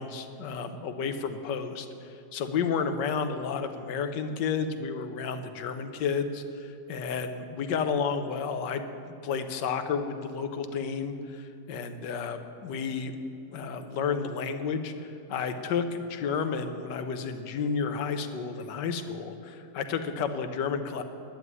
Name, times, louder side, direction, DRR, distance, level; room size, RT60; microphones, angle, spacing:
voice 1, 0.0-8.9 9.2-13.1 13.5-21.0, left 6 dB, 65° left, 8 dB, 1.4 m, -31 dB
11.0 x 7.5 x 9.5 m, 2.8 s
omnidirectional pair, 2.1 m